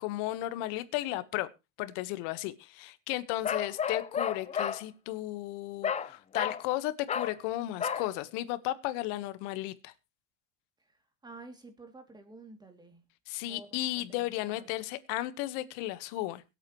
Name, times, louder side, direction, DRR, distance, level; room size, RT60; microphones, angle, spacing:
voice 1, 0.0-1.5 1.8-9.9 13.3-16.4, left 16 dB, 75° left, 1.5 m, -34 dB
Bark, 3.4-4.8 5.8-6.1 6.3-6.6 7.1-7.4 7.8-8.1, left 7 dB, 20° left, 0.7 m, -32 dB
voice 2, 10.9-13.0 13.5-14.7, right 3 dB, 10° right, 2.8 m, -51 dB
22.0 x 8.4 x 3.1 m
cardioid pair, 150°, 38 cm